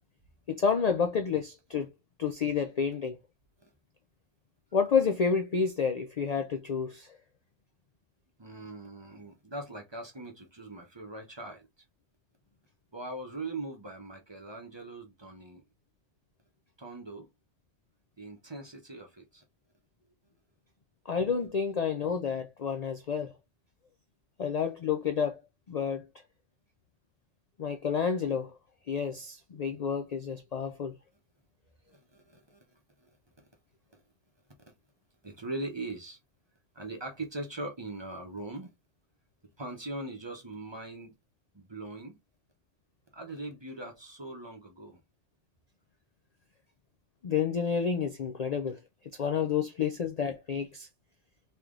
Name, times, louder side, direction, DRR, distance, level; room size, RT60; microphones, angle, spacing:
voice 1, 0.5-1.9 2.2-3.2 4.7-7.1 21.1-23.3 24.4-25.4 25.7-26.0 27.6-28.5 28.9-31.0 47.2-48.8 49.2-50.9, left 6 dB, 60° left, 0.4 m, -29 dB
voice 2, 8.4-11.7 12.9-15.6 16.8-17.3 18.2-19.4 31.9-33.5 33.9-34.0 34.6-34.7 35.2-36.2 36.7-38.7 39.6-41.2 41.5-42.2 43.1-45.0, right 2 dB, 25° right, 0.8 m, -41 dB
3.2 x 2.9 x 3.7 m
omnidirectional pair, 1.2 m